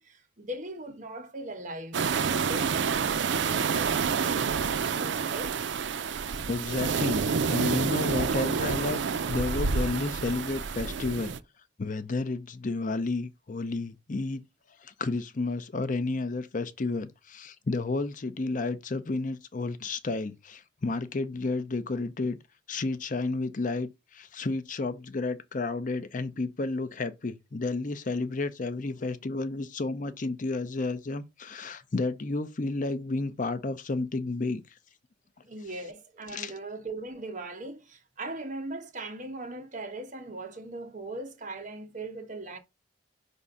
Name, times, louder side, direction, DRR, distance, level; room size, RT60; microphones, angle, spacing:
voice 1, 0.0-5.6 35.5-42.6, right 2 dB, 40° right, 1.2 m, -39 dB
sound 1, 1.9-11.4, right 5 dB, 65° right, 0.5 m, -28 dB
voice 2, 6.5-9.0 9.3-11.3 11.8-14.4 14.8-22.4 22.7-34.6 36.3-36.5, left 3 dB, 45° left, 0.6 m, -31 dB
5.4 x 3.6 x 5.4 m
head